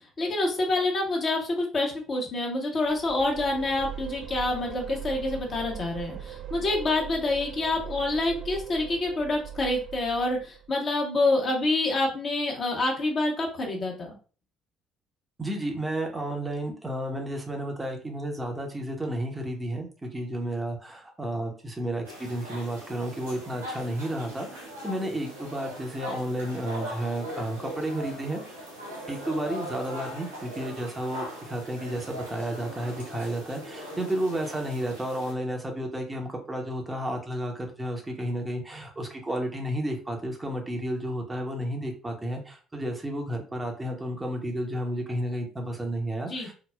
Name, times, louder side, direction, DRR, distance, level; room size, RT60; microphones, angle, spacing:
voice 1, 0.2-14.1 46.2-46.5, left 2 dB, 40° left, 0 dB, 0.8 m, -27 dB
sound 1, 2.9-10.7, right 9 dB, 45° right, 0.4 m, -40 dB
voice 2, 15.4-28.4 29.1-46.5, right 1 dB, 15° right, 2 dB, 0.7 m, -32 dB
sound 2, 22.0-35.3, equal, 75° right, 0.9 m, -40 dB
3.8 x 2.0 x 2.2 m, 0.38 s
figure-of-eight pair, 50°, 0 cm